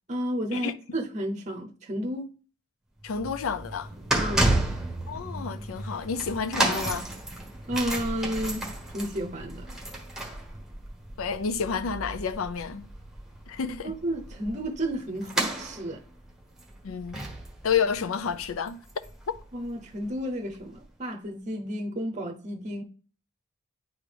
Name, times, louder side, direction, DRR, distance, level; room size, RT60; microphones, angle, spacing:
voice 1, 0.1-2.2 4.2-4.6 7.7-8.7 8.9-9.8 13.8-16.0 19.5-22.8, equal, 35° right, 0.7 m, -32 dB
voice 2, 3.0-3.9 5.1-7.1 11.2-12.9 13.5-14.0 16.8-17.3 17.6-19.4, left 6 dB, 85° left, 0.5 m, -30 dB
sound 1, 3.0-19.4 19.6-19.9 20.7-20.8, right 1 dB, ahead, 1.1 m, -32 dB
9.5 x 3.7 x 3.4 m
head